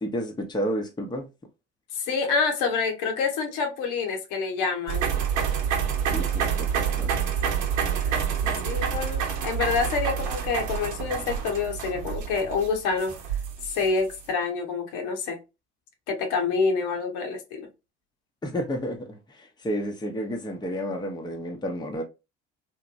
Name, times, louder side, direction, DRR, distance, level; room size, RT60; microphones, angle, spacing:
voice 1, 0.0-1.3 6.1-7.2 8.4-8.7 18.4-22.0, equal, 10° left, 0.7 m, -31 dB
voice 2, 1.9-5.1 7.8-8.2 8.6-13.1 13.6-15.4 16.1-17.7, left 5 dB, 70° left, 1.0 m, -27 dB
sound 1, 4.9-14.2, right 8 dB, 60° right, 0.9 m, -28 dB
2.9 x 2.2 x 2.5 m
hypercardioid pair, 65°, 35 cm